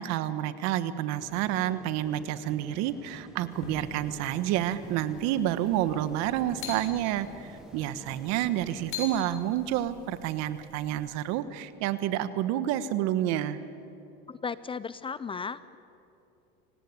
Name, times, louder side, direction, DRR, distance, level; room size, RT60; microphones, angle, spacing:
voice 1, 0.0-13.6, right 12 dB, 60° right, 13 dB, 1.4 m, -29 dB
sound 1, 1.2-8.9, right 1 dB, ahead, 1.0 m, -49 dB
sound 2, 3.5-11.2, left 5 dB, 45° left, 7.0 m, -45 dB
voice 2, 14.3-15.8, left 5 dB, 20° left, 16 dB, 0.5 m, -35 dB
25.5 x 18.0 x 9.7 m, 2.8 s
supercardioid pair, 120°, 29 cm